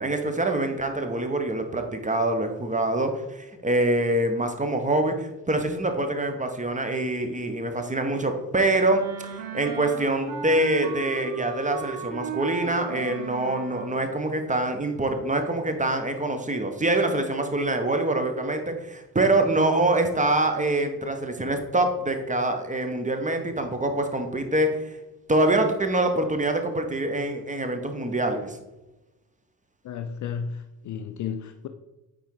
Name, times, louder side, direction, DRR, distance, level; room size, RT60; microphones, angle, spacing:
voice 1, 0.0-25.0 25.3-28.6, right 2 dB, 15° right, 6 dB, 1.2 m, -25 dB
Wind instrument woodwind instrument, 8.8-14.1, right 5 dB, 75° right, 1.0 m, -35 dB
voice 2, 29.8-31.7, left 7 dB, 40° left, 8 dB, 0.6 m, -33 dB
8.8 x 3.7 x 4.8 m, 1.0 s
figure-of-eight pair, 45°, 48 cm